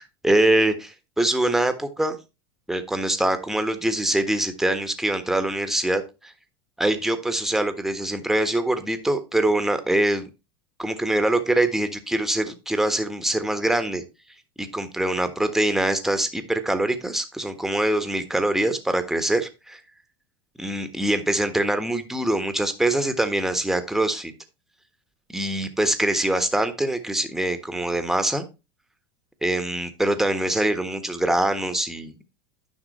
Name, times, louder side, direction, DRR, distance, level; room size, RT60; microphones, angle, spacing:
voice 1, 0.0-2.2 2.7-6.3 6.8-10.3 10.8-14.0 14.6-19.8 20.6-24.3 25.3-28.4 29.4-32.1, right 1 dB, 5° right, 8 dB, 1.4 m, -24 dB
10.0 x 5.8 x 4.2 m, 0.28 s
hypercardioid pair, 95°, 12 cm